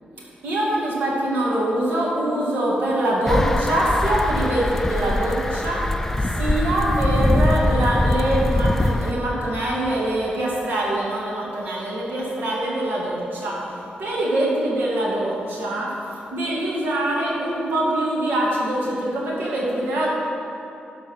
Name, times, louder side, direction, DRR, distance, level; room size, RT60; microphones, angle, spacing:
voice 1, 0.4-5.8 6.4-13.6 14.0-15.9 16.3-20.1, right 1 dB, 75° right, -5 dB, 2.1 m, -23 dB
sound 1, 3.3-9.1, left 1 dB, 10° left, 0.3 m, -22 dB
12.0 x 3.9 x 6.0 m, 2.8 s
wide cardioid pair, 150°, 3 cm